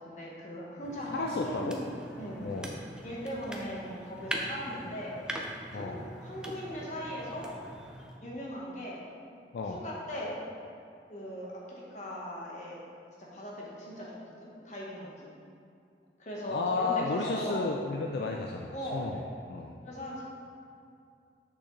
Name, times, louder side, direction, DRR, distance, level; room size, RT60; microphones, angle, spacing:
voice 1, 0.0-1.8 2.2-2.4 3.0-5.2 5.7-7.5 8.2-9.0 9.7-10.4 11.1-12.8 13.2-15.3 16.2-17.6 18.7-19.1 19.8-20.2, equal, 40° left, -4 dB, 1.2 m, -39 dB
sound 1, 0.8-8.2, right 1 dB, 5° right, 0.4 m, -42 dB
voice 2, 1.1-1.8 2.4-2.7 5.7-6.1 9.5-9.8 16.5-19.2 19.5-19.7, left 3 dB, 65° left, 0 dB, 0.4 m, -33 dB
6.3 x 6.1 x 3.2 m, 2.4 s
head